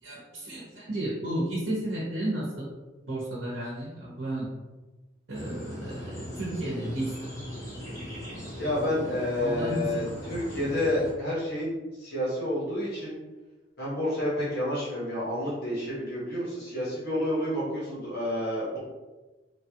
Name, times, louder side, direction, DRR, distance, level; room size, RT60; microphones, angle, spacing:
voice 1, 0.0-2.7 3.1-4.5 5.3-7.3 9.4-10.1, right 1 dB, 80° right, -6 dB, 0.9 m, -33 dB
sound 1, 5.3-11.1, equal, 20° left, 1.1 m, -39 dB
voice 2, 8.6-10.0 10.3-11.7 12.0-13.2 13.8-18.8, left 1 dB, 55° left, -7 dB, 1.2 m, -29 dB
3.1 x 2.4 x 2.9 m, 1.2 s
head